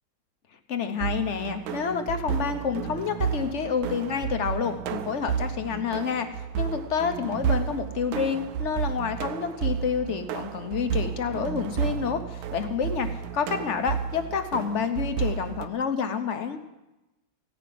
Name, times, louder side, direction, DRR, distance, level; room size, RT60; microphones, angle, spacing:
voice 1, 0.7-6.3 6.6-13.1 13.3-16.6, left 6 dB, 55° left, 8 dB, 0.8 m, -28 dB
sound 1, 1.0-15.7, right 8 dB, 90° right, 1.5 m, -32 dB
16.0 x 5.9 x 9.2 m, 1.0 s
omnidirectional pair, 2.2 m